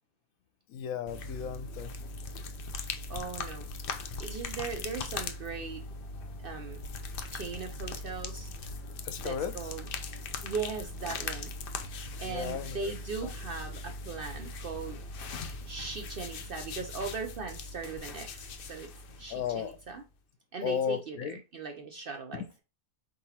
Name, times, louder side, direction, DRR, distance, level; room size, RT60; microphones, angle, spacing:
voice 1, 0.7-1.9 9.0-9.6 12.2-12.9 13.2-13.3 19.3-19.8 20.6-21.4 22.3-22.4, left 8 dB, 80° left, 1.0 m, -34 dB
sound 1, 1.1-20.0, left 3 dB, 55° left, 0.6 m, -40 dB
voice 2, 3.1-3.7 4.2-5.9 6.4-6.8 7.3-8.5 9.2-9.8 10.4-11.5 12.2-15.0 15.7-18.9 19.2-20.0 20.5-22.6, right 4 dB, 60° right, 0.6 m, -39 dB
4.8 x 3.9 x 2.7 m
omnidirectional pair, 1.5 m